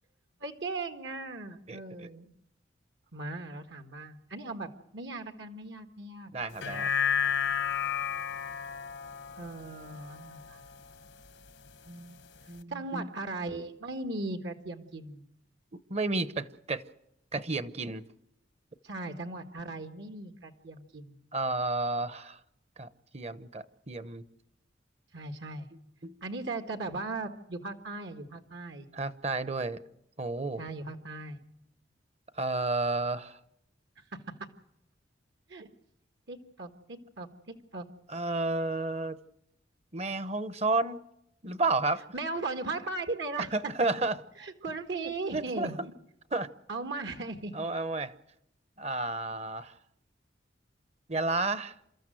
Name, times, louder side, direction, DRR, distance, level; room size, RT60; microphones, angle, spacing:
voice 1, 0.4-2.3 3.1-6.3 9.3-10.6 12.7-15.2 18.8-21.2 25.1-25.7 26.2-28.8 30.6-31.4 34.1-34.2 35.5-35.7 36.3-37.8 42.1-43.5 44.4-45.9 46.7-47.5, right 3 dB, 70° right, 1.6 m, -38 dB
voice 2, 1.7-2.1 6.3-6.9 11.9-12.2 12.5-13.1 15.9-16.8 17.3-18.0 21.3-22.4 22.8-22.9 23.1-24.2 26.0-26.1 28.9-29.8 30.2-30.6 32.4-33.4 38.1-39.2 39.9-41.0 41.4-42.0 43.5-44.1 45.3-45.7 46.3-46.5 47.5-48.1 48.8-49.7 51.1-51.7, right 3 dB, 35° right, 0.9 m, -31 dB
sound 1, 6.5-11.1 11.5-11.6, left 8 dB, 80° left, 1.1 m, -32 dB
28.0 x 13.5 x 7.7 m
head